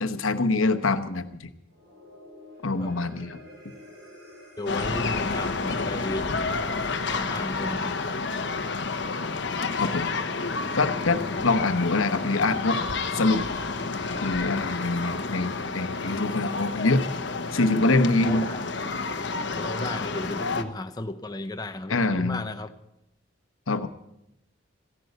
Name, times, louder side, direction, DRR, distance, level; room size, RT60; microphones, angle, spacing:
voice 1, 0.0-1.5 2.6-3.4 3.6-3.7 9.8-10.1 10.8-12.8 13.1-13.4 14.2-17.1 17.5-18.5 21.9-22.4 23.7-23.9, left 2 dB, 90° left, 9 dB, 1.0 m, -25 dB
sound 1, 1.6-18.1, equal, 55° right, 5.8 m, -50 dB
voice 2, 4.6-6.3 6.6-8.0 18.2-18.6 19.5-22.7, left 2 dB, 20° left, 7 dB, 0.7 m, -34 dB
sound 2, 4.7-20.6, left 4 dB, 60° left, 1.0 m, -30 dB
sound 3, 11.1-18.8, left 2 dB, 5° right, 4.4 m, -48 dB
15.0 x 11.0 x 8.0 m, 0.82 s
head